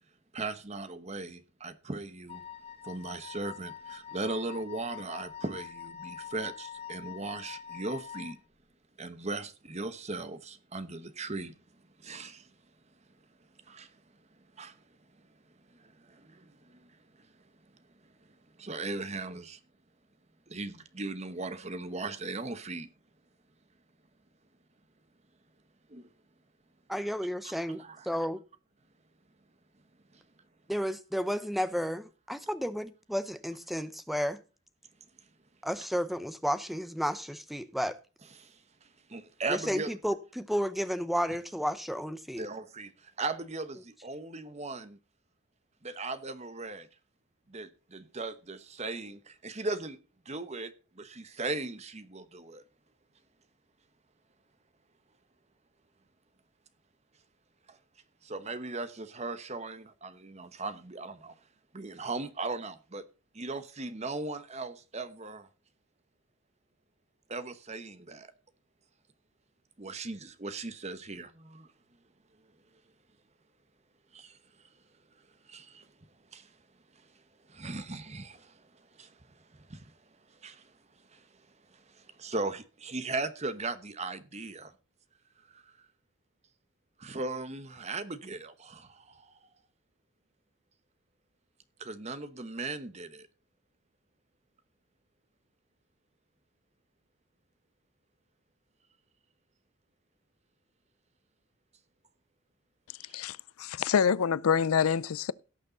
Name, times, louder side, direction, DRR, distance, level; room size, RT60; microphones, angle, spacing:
voice 1, 0.3-2.4 2.8-8.4 9.0-11.5 12.0-12.5 13.7-14.0 14.6-14.8 15.7-16.9 17.2-17.3 18.6-19.6 20.5-22.9 25.9-26.1 27.8-28.1 30.1-30.2 38.4-39.9 42.4-45.0 45.8-46.9 47.5-50.0 50.2-52.6 57.7-57.8 58.2-61.4 61.7-63.0 63.3-65.5 67.3-68.3 69.8-71.7 74.1-74.4 75.4-75.9 76.3-76.5 77.0-77.1 77.5-79.9 80.3-80.8 81.1-81.3 81.7-84.7 85.5-85.7 87.0-89.3 91.8-93.3, right 3 dB, 30° right, 1.0 m, -38 dB
Wind instrument woodwind instrument, 2.3-8.4, left 8 dB, 25° left, 1.0 m, -45 dB
voice 2, 26.9-28.4 30.7-34.4 35.6-38.0 39.5-42.5, equal, ahead, 0.7 m, -32 dB
voice 3, 103.1-105.3, left 7 dB, 80° left, 0.4 m, -26 dB
17.5 x 6.5 x 3.9 m
head